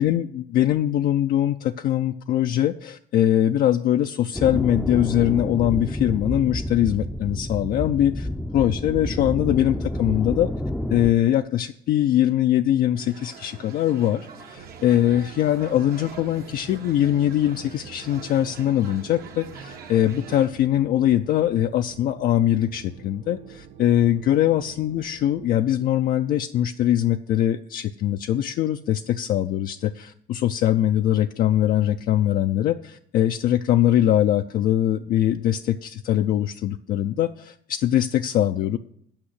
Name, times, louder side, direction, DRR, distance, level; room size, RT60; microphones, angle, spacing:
voice 1, 0.0-8.3 8.5-10.5 10.9-38.8, left 12 dB, 60° left, 7 dB, 0.4 m, -22 dB
sound 1, 4.3-11.1, left 1 dB, 5° left, 0.5 m, -29 dB
sound 2, 12.9-20.5, right 6 dB, 65° right, 1.2 m, -44 dB
sound 3, 14.5-25.5, right 8 dB, 90° right, 0.9 m, -46 dB
8.8 x 5.6 x 8.0 m, 0.70 s
cardioid pair, 110°, 17 cm